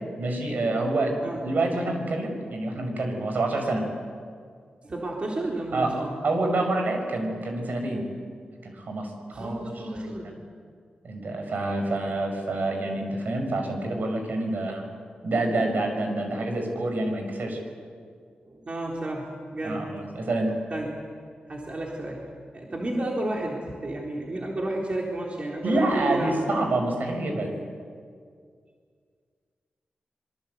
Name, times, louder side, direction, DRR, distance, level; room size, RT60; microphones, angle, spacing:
voice 1, 0.2-3.8 5.7-8.0 8.6-10.3 11.0-14.8 15.2-17.6 19.6-20.5 25.6-27.5, right 2 dB, 65° right, 3 dB, 6.1 m, -27 dB
voice 2, 4.8-6.1 9.3-10.3 18.5-19.8 20.7-21.0 21.5-22.3 22.5-26.3, right 1 dB, 40° right, -2 dB, 3.8 m, -32 dB
26.0 x 24.0 x 8.3 m, 2.1 s
wide cardioid pair, 110°, 3 cm